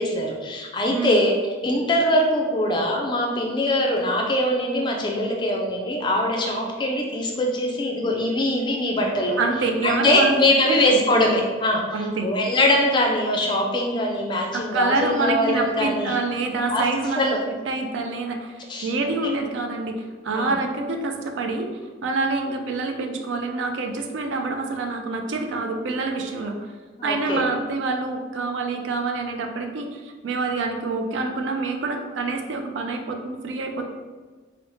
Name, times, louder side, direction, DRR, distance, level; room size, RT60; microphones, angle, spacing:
voice 1, 0.0-1.3 1.6-9.4 9.8-16.2 16.7-16.8 17.2-17.4 18.7-19.2 20.3-20.6 27.0-27.4, left 1 dB, 25° left, 0 dB, 0.3 m, -22 dB
voice 2, 0.8-1.2 9.4-10.3 10.7-11.0 11.9-12.3 14.5-17.3 17.7-21.7 22.0-26.6 27.0-33.8, right 3 dB, 70° right, 4 dB, 0.3 m, -26 dB
3.1 x 2.0 x 2.6 m, 1.4 s
head